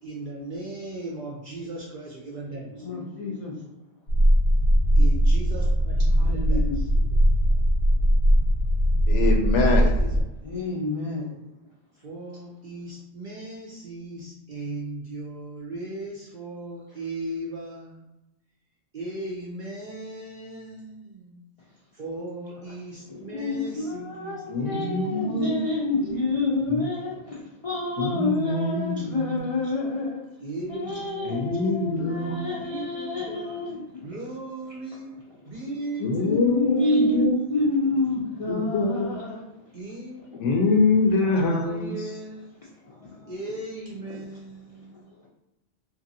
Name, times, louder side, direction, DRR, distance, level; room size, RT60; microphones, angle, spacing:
voice 1, 0.0-2.9 5.0-6.9 9.7-10.4 12.0-18.0 18.9-21.4 21.9-25.5 26.0-26.2 30.4-31.5 31.9-33.6 34.0-35.1 35.5-37.1 39.7-40.8 41.2-42.7 43.3-45.1, right 2 dB, 55° right, -3 dB, 0.6 m, -37 dB
voice 2, 2.7-3.7 6.1-6.8 7.1-7.2 7.5-7.6 10.4-11.4 23.1-30.2 30.7-34.2 36.2-39.4 42.8-43.3 44.9-45.3, left 2 dB, 50° left, -5 dB, 0.4 m, -28 dB
sound 1, 4.1-10.2, equal, 90° left, 1.3 m, -20 dB
voice 3, 9.1-9.9 24.5-25.6 26.7-26.9 28.0-29.5 31.2-32.4 36.0-37.4 38.5-39.2 40.4-41.9, left 3 dB, 70° left, 2 dB, 0.9 m, -24 dB
2.9 x 2.5 x 2.6 m, 0.93 s
omnidirectional pair, 1.3 m